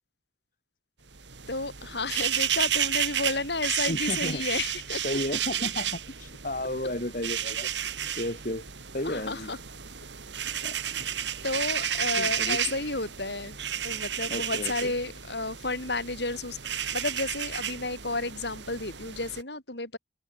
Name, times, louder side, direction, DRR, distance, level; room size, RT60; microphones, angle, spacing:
sound 1, 1.1-19.4, right 10 dB, 80° right, 3.3 m, -32 dB
voice 1, 1.5-5.2 9.0-9.6 11.4-20.0, left 3 dB, 70° left, 7.3 m, -32 dB
voice 2, 3.9-4.4 5.0-7.7 8.2-8.6 8.9-9.5 10.6-11.1 12.2-12.6 14.3-14.9, left 1 dB, 45° left, 4.5 m, -33 dB
open air
head